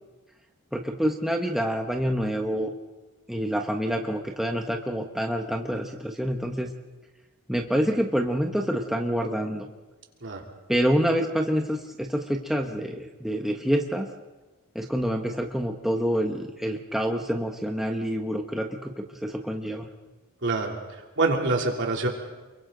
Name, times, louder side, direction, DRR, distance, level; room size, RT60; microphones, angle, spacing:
voice 1, 0.7-2.7 3.3-6.7 7.5-9.7 10.7-14.1 14.7-19.9, equal, ahead, 2 dB, 1.1 m, -27 dB
voice 2, 21.2-22.1, right 3 dB, 55° right, 1 dB, 3.2 m, -25 dB
29.0 x 23.0 x 3.9 m, 1.2 s
head